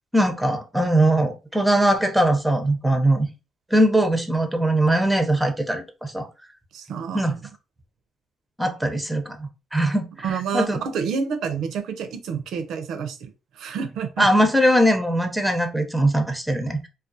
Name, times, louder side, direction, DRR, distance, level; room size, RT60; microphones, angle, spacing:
voice 1, 0.1-3.3 3.7-6.3 7.1-7.3 8.6-10.3 10.5-10.8 14.2-16.9, right 1 dB, 5° right, 0.6 m, -21 dB
voice 2, 6.7-7.3 10.2-13.3 13.6-14.3, right 6 dB, 75° right, 0.5 m, -28 dB
2.3 x 2.2 x 2.6 m
cardioid pair, 80°, 0 cm